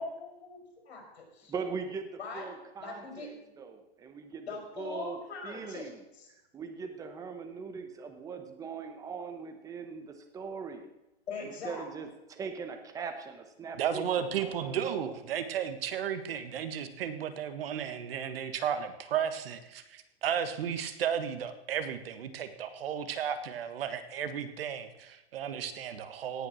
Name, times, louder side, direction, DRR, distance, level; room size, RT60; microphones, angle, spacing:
voice 1, 0.0-1.5 2.2-3.3 4.5-6.3 11.3-11.8, left 4 dB, 85° left, 1 dB, 4.8 m, -42 dB
voice 2, 1.5-5.2 5.4-6.0 6.5-10.9 11.4-14.0 14.3-15.2, right 5 dB, 10° right, 7 dB, 0.9 m, -41 dB
voice 3, 13.8-26.5, right 8 dB, 65° right, 10 dB, 1.5 m, -34 dB
17.5 x 5.9 x 6.4 m, 0.92 s
supercardioid pair, 165°, 31 cm